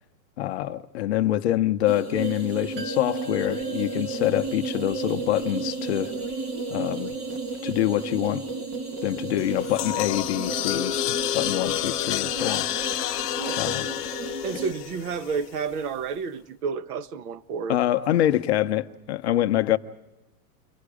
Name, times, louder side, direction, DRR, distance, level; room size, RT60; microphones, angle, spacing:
voice 1, 0.4-6.1 6.7-7.1 7.6-8.4 9.0-12.7 13.6-13.9 17.7-19.8, left 13 dB, 40° left, 0.7 m, -25 dB
sound 1, 1.9-14.7, right 3 dB, 20° right, 0.8 m, -33 dB
sound 2, 2.8-14.4 14.6-14.7, right 1 dB, 90° right, 3.2 m, -45 dB
sound 3, 9.4-15.7, left 13 dB, 65° left, 1.0 m, -29 dB
voice 2, 14.4-17.8, right 5 dB, 65° right, 1.2 m, -30 dB
30.0 x 23.5 x 4.9 m
supercardioid pair, 170°, 49 cm